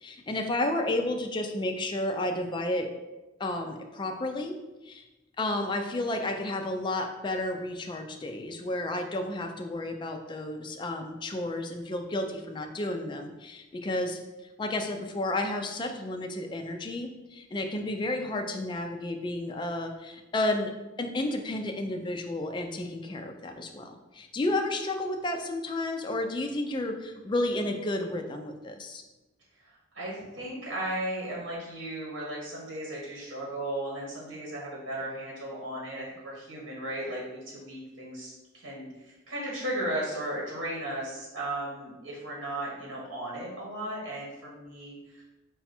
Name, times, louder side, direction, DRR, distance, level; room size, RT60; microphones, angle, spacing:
voice 1, 0.0-2.9 3.4-4.5 4.8-5.0 5.4-14.2 14.6-20.7 21.0-29.0, left 1 dB, 25° left, 4 dB, 0.3 m, -32 dB
voice 2, 29.6-45.2, right 1 dB, 75° right, -4 dB, 1.3 m, -36 dB
3.9 x 2.3 x 4.2 m, 1.1 s
head